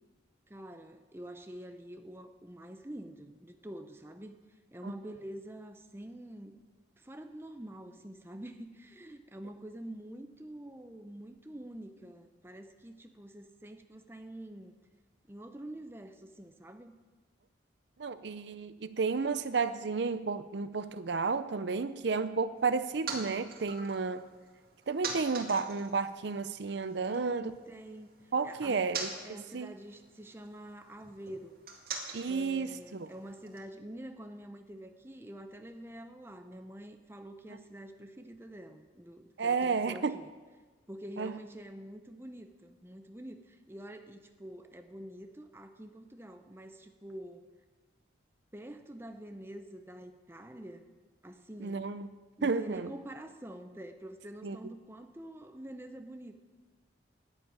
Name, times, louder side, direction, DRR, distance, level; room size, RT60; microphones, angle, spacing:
voice 1, 0.5-4.4 4.7-6.5 7.0-14.7 15.3-16.9 27.0-28.8 29.2-31.5 32.3-40.3 40.9-47.5 48.5-50.9 51.2-51.9 52.4-56.3, right 1 dB, 15° right, 6 dB, 0.7 m, -46 dB
voice 2, 18.0-24.2 24.9-27.5 28.3-29.1 29.5-29.7 32.1-33.1 39.4-40.2 41.2-41.3 51.6-52.1 52.4-52.9 54.4-54.6, right 4 dB, 70° right, 13 dB, 0.6 m, -32 dB
sound 1, 22.6-27.2 27.5-33.6, right 4 dB, 50° right, 2.0 m, -45 dB
11.0 x 9.9 x 8.9 m, 1.3 s
head